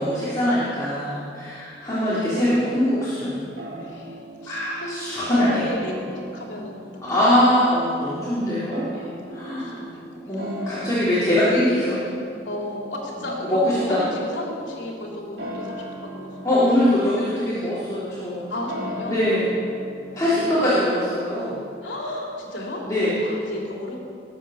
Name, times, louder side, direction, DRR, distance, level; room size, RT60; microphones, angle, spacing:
voice 1, 0.0-3.4 4.5-5.6 7.0-8.8 9.3-9.7 10.3-12.0 13.5-13.6 13.9-14.0 16.4-18.5 19.1-19.5 20.2-21.6 22.9-23.1, left 1 dB, 20° left, -12 dB, 3.9 m, -22 dB
voice 2, 1.8-2.4 3.8-6.9 8.9-11.0 12.5-16.6 18.5-19.2 20.1-20.6 21.8-24.0, left 1 dB, 85° left, -2 dB, 3.4 m, -35 dB
sound 1, 3.6-22.0, equal, 80° right, 4.7 m, -39 dB
21.0 x 8.7 x 6.7 m, 2.5 s
head